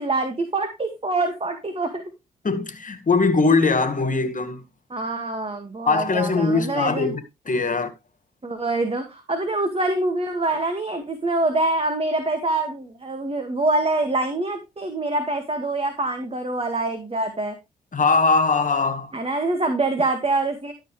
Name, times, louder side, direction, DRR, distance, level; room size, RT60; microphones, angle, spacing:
voice 1, 0.0-2.0 4.9-7.1 8.4-17.6 19.1-20.7, right 2 dB, 30° right, 2.0 m, -25 dB
voice 2, 2.4-4.6 5.9-7.2 7.5-7.9 17.9-19.1, left 4 dB, 40° left, 2.0 m, -21 dB
13.0 x 6.3 x 3.2 m
hypercardioid pair, 40°, 21 cm